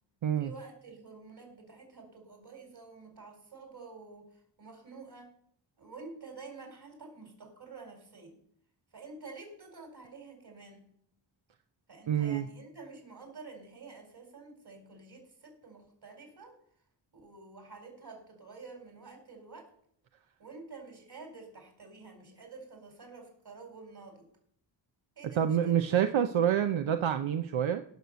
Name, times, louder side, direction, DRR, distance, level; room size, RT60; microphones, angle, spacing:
voice 1, 0.4-5.3 5.8-8.4 8.9-10.8 11.9-16.6 17.1-19.7 20.4-24.3 25.1-25.8, right 4 dB, 55° right, 3 dB, 4.8 m, -49 dB
voice 2, 12.1-12.5 25.4-27.8, right 9 dB, 90° right, 8 dB, 0.7 m, -27 dB
16.0 x 6.5 x 6.8 m, 0.69 s
cardioid pair, 70°, 45 cm